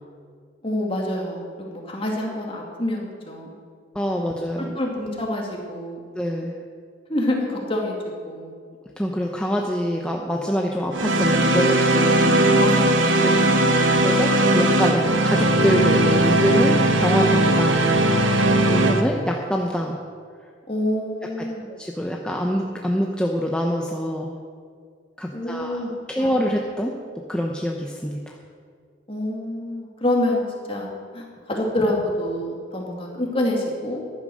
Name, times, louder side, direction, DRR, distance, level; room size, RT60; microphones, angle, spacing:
voice 1, 0.6-3.5 4.2-4.3 4.8-6.0 7.1-8.0 8.2-8.5 12.6-14.0 20.7-21.7 25.3-25.9 26.2-26.5 29.1-34.0, left 1 dB, 30° left, -1 dB, 2.5 m, -27 dB
voice 2, 3.9-4.8 6.1-6.5 9.0-11.8 13.2-13.5 14.0-17.8 18.7-20.0 21.8-24.3 25.2-25.8 26.1-26.9 27.3-28.4, equal, 5° left, 0 dB, 0.8 m, -25 dB
sound 1, 10.9-19.0, right 1 dB, 80° right, 1.4 m, -18 dB
14.0 x 11.0 x 6.4 m, 2.1 s
head